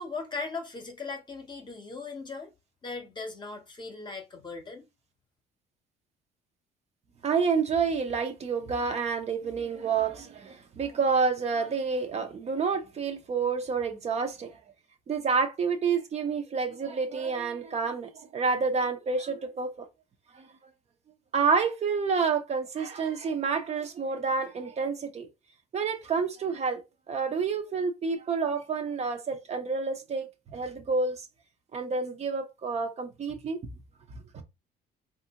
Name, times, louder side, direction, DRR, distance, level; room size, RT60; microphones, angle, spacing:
voice 1, 0.0-2.5 2.8-4.8, left 3 dB, 25° left, 0.8 m, -38 dB
voice 2, 7.2-14.6 15.1-19.9 20.3-20.5 21.3-25.3 25.7-26.8 27.1-31.2 31.7-33.6 34.3-34.4, right 5 dB, 40° right, 0.7 m, -29 dB
3.3 x 2.5 x 2.8 m
cardioid pair, 110°, 17 cm